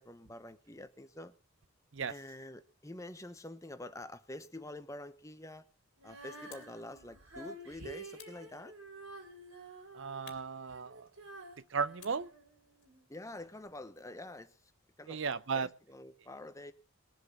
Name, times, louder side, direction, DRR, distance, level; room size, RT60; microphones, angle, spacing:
voice 1, 0.0-1.3 2.1-5.7 6.0-8.7 13.1-14.6 15.0-16.7, left 1 dB, 15° left, 1.0 m, -47 dB
Female singing, 6.0-13.0 13.7-13.8, right 2 dB, 90° right, 4.7 m, -50 dB
sound 1, 6.5-6.8 8.2-9.1 10.2-11.4 12.0-14.2, left 10 dB, 60° left, 2.5 m, -59 dB
voice 2, 9.9-11.1 11.7-12.3 15.1-15.7, right 5 dB, 65° right, 0.6 m, -35 dB
20.0 x 7.8 x 6.9 m
head